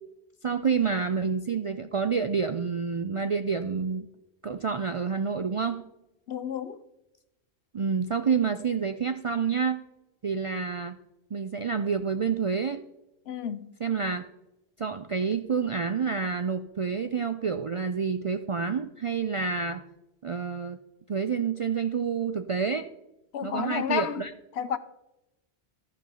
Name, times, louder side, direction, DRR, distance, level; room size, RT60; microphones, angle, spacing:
voice 1, 0.4-4.1 4.4-5.8 7.7-9.8 10.2-11.0 11.3-12.8 13.8-14.2 14.8-19.8 20.2-20.8 21.1-22.9 23.4-24.3, right 6 dB, 55° right, 0.3 m, -28 dB
voice 2, 6.3-6.8 13.3-13.7 23.3-24.2 24.6-24.8, left 8 dB, 75° left, 0.9 m, -31 dB
13.5 x 5.3 x 5.5 m
omnidirectional pair, 1.1 m